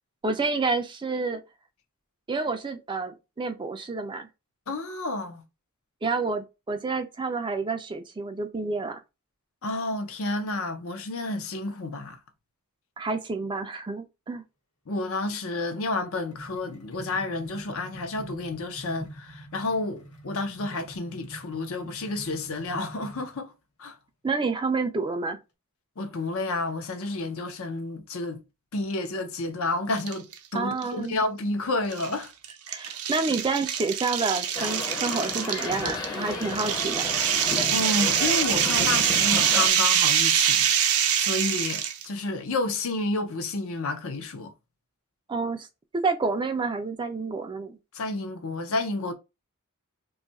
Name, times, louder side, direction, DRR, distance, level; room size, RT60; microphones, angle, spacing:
voice 1, 0.2-1.4 2.3-4.3 6.0-9.0 13.0-14.4 24.2-25.4 30.5-31.2 32.7-37.1 45.3-45.7 46.0-47.8, right 4 dB, 20° right, 0.4 m, -29 dB
voice 2, 4.7-5.4 9.6-12.2 14.9-23.5 23.8-24.0 26.0-28.4 28.7-32.3 37.7-40.7 41.2-44.5 47.9-49.1, left 2 dB, 65° left, 0.6 m, -30 dB
sound 1, 15.8-23.4, right 1 dB, 80° left, 1.0 m, -45 dB
sound 2, 30.0-30.4 30.8-30.9 31.9-42.1, right 9 dB, 75° right, 0.5 m, -24 dB
sound 3, 34.5-39.7, left 3 dB, 20° left, 0.6 m, -33 dB
2.6 x 2.3 x 4.0 m
head